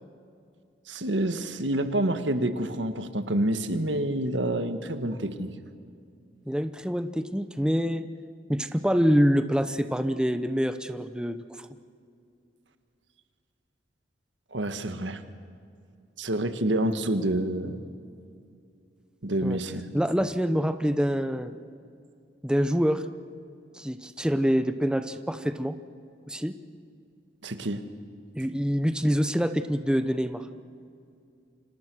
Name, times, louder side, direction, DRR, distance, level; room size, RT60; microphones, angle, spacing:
voice 1, 0.9-5.5 14.5-15.2 16.2-17.9 19.2-19.9 27.4-27.8, right 1 dB, 75° right, 9 dB, 1.7 m, -28 dB
voice 2, 6.5-8.1 8.5-11.7 19.4-19.6 19.9-21.5 22.4-23.0 23.7-25.8 26.3-26.5 28.3-30.4, equal, 5° right, 9 dB, 0.8 m, -26 dB
29.5 x 26.0 x 6.3 m, 2.4 s
head